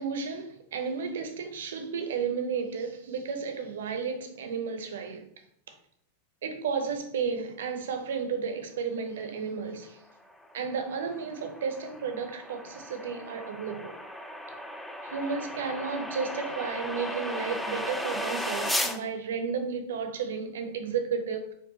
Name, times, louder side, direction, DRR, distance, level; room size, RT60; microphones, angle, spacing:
voice 1, 0.0-5.3 6.4-10.0 10.5-14.0 15.0-21.5, right 5 dB, 60° right, 0.6 m, -33 dB
sound 1, 10.3-19.0, left 1 dB, 5° left, 0.3 m, -35 dB
4.6 x 2.4 x 2.8 m
figure-of-eight pair, 90°, 0 cm